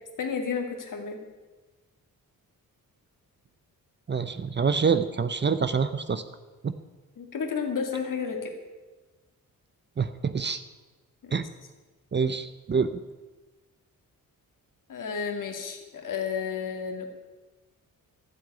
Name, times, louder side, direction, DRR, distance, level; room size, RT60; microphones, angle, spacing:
voice 1, 0.2-1.2 7.2-8.5 11.2-11.3 14.9-17.1, left 6 dB, 60° left, 4 dB, 2.3 m, -31 dB
voice 2, 4.1-6.2 6.6-6.7 10.0-10.6 11.3-11.4 12.1-12.9, right 5 dB, 30° right, 12 dB, 0.6 m, -26 dB
12.5 x 7.8 x 9.5 m, 1.2 s
wide cardioid pair, 140°, 35 cm